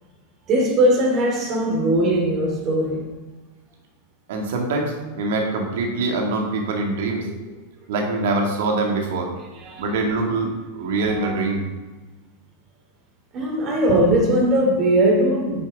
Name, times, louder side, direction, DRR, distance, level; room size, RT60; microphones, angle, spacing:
voice 1, 0.5-3.0 9.5-9.8 11.2-11.4 13.3-15.6, right 1 dB, 35° right, 2.8 m, -19 dB
voice 2, 4.3-7.3 7.9-9.3 9.8-11.7, right 3 dB, 55° right, 2.1 m, -24 dB
10.0 x 9.6 x 3.6 m
figure-of-eight pair, 90°, 0 cm